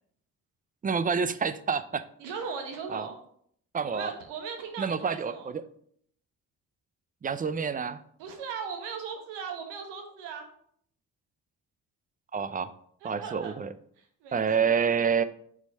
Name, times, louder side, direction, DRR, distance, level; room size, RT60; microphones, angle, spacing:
voice 1, 0.8-2.0 2.9-3.1 3.7-4.1 4.8-5.6 7.2-8.0 12.3-12.7 13.0-13.7 14.3-15.2, right 6 dB, 20° right, 14 dB, 0.4 m, -28 dB
voice 2, 2.2-3.2 3.8-5.5 8.2-10.5 13.0-13.5 14.0-14.6, right 6 dB, 80° right, 4 dB, 1.1 m, -38 dB
4.4 x 4.2 x 5.4 m, 0.65 s
hypercardioid pair, 50°, 40 cm